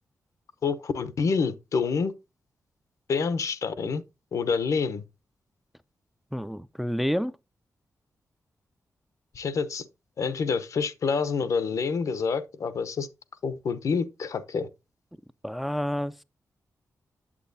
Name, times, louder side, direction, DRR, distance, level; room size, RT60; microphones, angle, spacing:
voice 1, 0.6-2.1 3.1-4.0 4.3-5.0 9.3-9.8 10.2-13.1 13.4-14.7, left 5 dB, 70° left, 0.7 m, -27 dB
voice 2, 6.3-7.3 15.4-16.2, equal, ahead, 0.3 m, -29 dB
8.5 x 7.7 x 2.6 m
wide cardioid pair, 105°, 6 cm